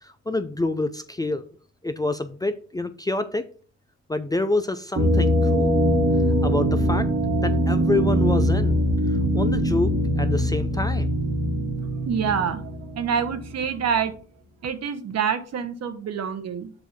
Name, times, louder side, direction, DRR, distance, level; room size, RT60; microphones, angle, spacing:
voice 1, 0.0-1.5 1.8-3.4 4.1-5.8 6.4-7.1 7.4-8.8 9.3-9.9 10.2-11.1, left 2 dB, 15° left, 9 dB, 0.4 m, -27 dB
sound 1, 5.0-13.6, equal, 40° right, 1.4 m, -22 dB
voice 2, 12.0-14.1 14.6-16.7, right 7 dB, 60° right, 10 dB, 1.0 m, -26 dB
7.0 x 2.7 x 5.8 m, 0.42 s
cardioid pair, 90°, 30 cm